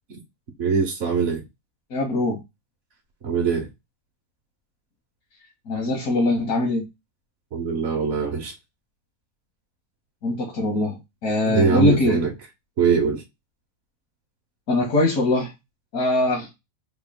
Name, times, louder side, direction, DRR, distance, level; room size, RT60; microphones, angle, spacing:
voice 1, 0.6-1.4 3.2-3.7 7.5-8.5 11.5-12.3 12.8-13.2, right 5 dB, 60° right, 1.0 m, -22 dB
voice 2, 1.9-2.4 5.7-6.8 10.2-12.2 14.7-15.5 15.9-16.5, left 2 dB, 85° left, 1.5 m, -22 dB
3.7 x 2.2 x 3.5 m
omnidirectional pair, 1.5 m